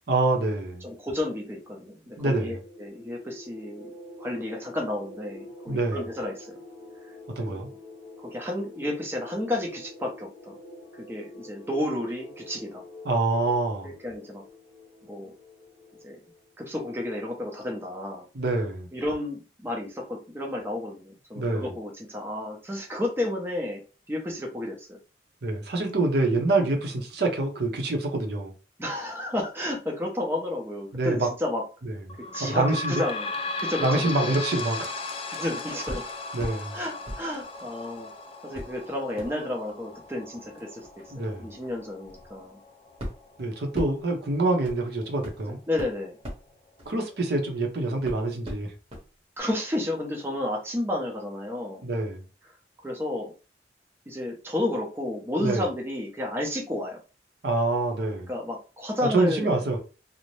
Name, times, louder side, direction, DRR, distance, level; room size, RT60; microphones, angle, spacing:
voice 1, 0.1-0.9 2.2-2.6 5.7-6.0 7.4-7.7 13.0-13.9 18.3-18.9 21.3-21.7 25.4-28.5 30.9-31.3 31.8-31.9 32.4-33.0 33.8-34.9 36.3-36.8 41.1-41.5 43.4-45.6 46.9-48.7 51.8-52.2 55.4-55.6 57.4-58.3 59.0-59.8, right 2 dB, 65° right, 0.7 m, -26 dB
voice 2, 0.8-3.9 4.2-6.6 7.4-7.6 8.2-10.6 10.9-12.8 13.8-14.4 15.0-15.3 16.0-16.2 16.6-18.3 18.9-23.8 24.1-25.0 28.8-31.6 32.3-33.3 33.6-34.3 35.3-36.0 36.7-38.1 38.4-42.6 45.5-46.1 49.4-51.8 52.8-53.3 54.1-57.0 58.3-59.6, left 1 dB, 15° right, 0.6 m, -32 dB
sound 1, 2.2-16.5, left 1 dB, 75° left, 0.9 m, -47 dB
sound 2, 32.1-45.3 45.8-45.9 46.2-46.3 47.1-47.2, left 3 dB, 30° left, 0.3 m, -37 dB
sound 3, 35.9-36.6 37.0-38.0 38.5-47.6 48.0-49.1 49.4-49.5, equal, 35° right, 0.9 m, -41 dB
2.6 x 2.0 x 3.1 m
head